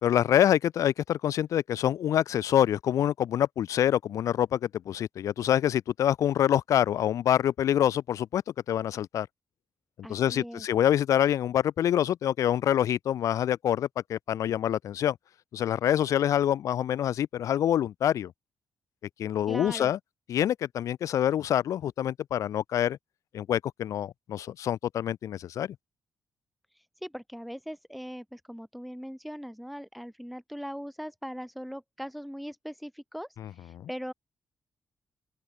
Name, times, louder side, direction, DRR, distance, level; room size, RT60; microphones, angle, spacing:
voice 1, 0.0-8.4 8.7-9.3 10.1-15.2 15.5-18.3 19.2-20.0 20.3-23.0 23.3-25.7 33.4-33.5, left 10 dB, 85° left, 4.6 m, -26 dB
voice 2, 10.0-10.7 19.5-19.9 26.7-34.1, equal, ahead, 5.8 m, -40 dB
wide cardioid pair, 170°, 5 cm